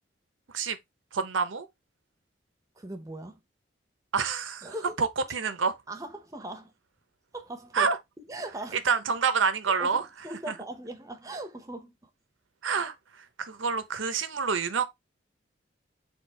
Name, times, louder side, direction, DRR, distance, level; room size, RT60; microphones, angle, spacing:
voice 1, 1.1-1.7 4.1-5.7 7.7-8.0 8.8-10.0 10.5-10.6 12.6-14.8, right 5 dB, 85° right, 0.7 m, -28 dB
voice 2, 2.8-3.4 4.6-5.0 5.9-6.7 7.3-7.9 8.2-8.8 9.8-12.0, right 1 dB, 15° right, 0.6 m, -39 dB
4.4 x 2.4 x 4.5 m
head